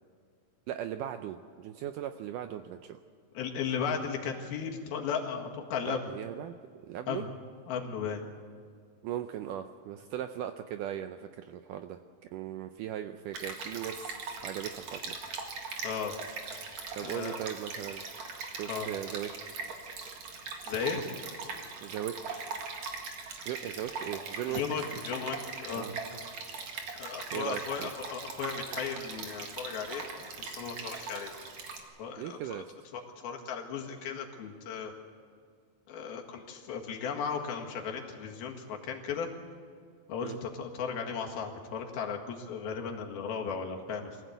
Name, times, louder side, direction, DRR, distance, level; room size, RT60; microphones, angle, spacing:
voice 1, 0.7-3.0 5.9-6.5 6.9-7.2 9.0-15.2 17.0-18.0 18.5-19.3 21.8-22.2 23.5-24.9 25.7-26.0 27.3-27.9 32.2-32.7 40.2-40.4, right 11 dB, 80° right, 8 dB, 1.9 m, -38 dB
voice 2, 3.4-6.1 7.1-7.3 7.7-8.2 15.8-16.2 17.0-17.4 18.7-18.9 20.7-21.0 24.5-25.9 26.6-26.7 27.0-31.3 32.0-32.6 32.9-34.9 35.9-39.3 40.1-44.2, left 6 dB, 80° left, 1 dB, 3.7 m, -36 dB
Stream, 13.3-31.8, right 4 dB, 55° right, 2.9 m, -40 dB
24.0 x 15.5 x 8.1 m, 2.2 s
omnidirectional pair, 4.3 m